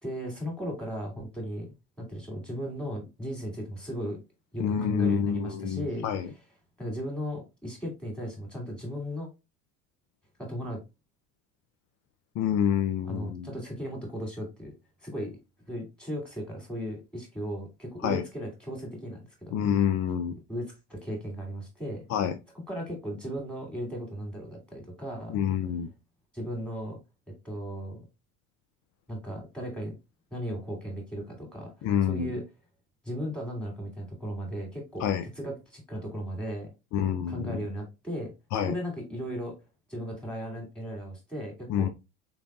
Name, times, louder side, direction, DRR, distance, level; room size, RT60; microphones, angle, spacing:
voice 1, 0.0-1.7 2.0-4.2 4.5-6.0 6.8-9.3 10.4-10.8 13.0-14.7 15.0-15.3 15.7-19.6 20.5-22.0 22.7-25.4 26.3-27.0 27.3-28.0 29.1-29.9 30.3-32.4 33.0-35.1 35.4-36.7 37.0-38.3 38.6-39.5 39.9-41.9, equal, 5° left, 0 dB, 2.4 m, -36 dB
voice 2, 4.6-6.3 12.4-13.5 18.0-18.2 19.5-20.3 22.1-22.3 25.3-25.9 31.8-32.3 35.0-35.2 36.9-37.6 38.5-38.7 41.7-41.9, left 9 dB, 45° left, 8 dB, 0.5 m, -27 dB
4.0 x 3.3 x 2.3 m, 0.25 s
hypercardioid pair, 75°, 38 cm